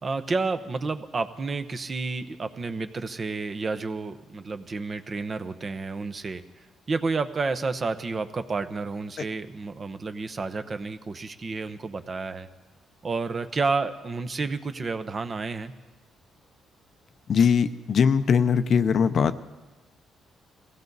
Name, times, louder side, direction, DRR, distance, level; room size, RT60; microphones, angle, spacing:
voice 1, 0.0-6.4 6.9-12.5 13.0-15.7, right 4 dB, 35° right, 9 dB, 0.9 m, -30 dB
voice 2, 17.3-19.5, left 6 dB, 55° left, 11 dB, 0.7 m, -21 dB
21.0 x 16.5 x 4.1 m, 1.2 s
cardioid pair, 90°, 0 cm